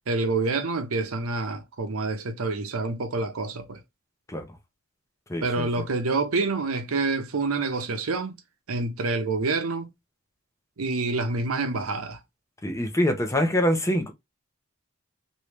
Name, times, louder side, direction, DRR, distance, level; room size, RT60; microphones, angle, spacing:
voice 1, 0.1-3.8 5.4-8.4 8.7-9.9 10.8-12.2, right 3 dB, 90° right, 0.7 m, -27 dB
voice 2, 5.3-5.7 12.6-14.1, equal, 15° left, 0.6 m, -24 dB
3.1 x 2.7 x 3.2 m
head